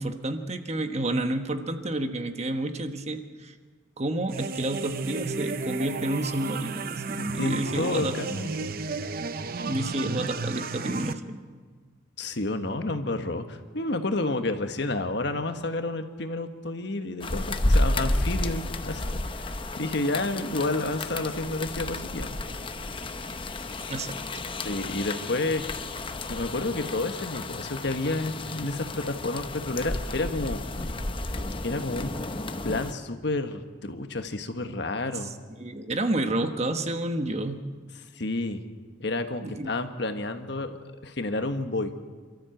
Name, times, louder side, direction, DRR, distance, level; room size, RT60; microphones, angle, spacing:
voice 1, 0.0-3.5 4.0-8.1 9.6-11.4 23.9-24.4 35.6-37.6 39.4-39.7, right 1 dB, 35° right, 7 dB, 1.2 m, -30 dB
sound 1, 4.3-11.1, right 4 dB, 50° right, 0.8 m, -33 dB
voice 2, 7.1-8.7 12.2-22.6 24.6-25.6 26.3-30.6 31.6-32.1 32.6-35.3 38.1-38.6 39.0-42.0, left 2 dB, 60° left, 7 dB, 1.4 m, -30 dB
sound 2, 17.2-32.9, left 2 dB, 25° left, 0.8 m, -31 dB
27.5 x 13.5 x 7.9 m, 1.5 s
head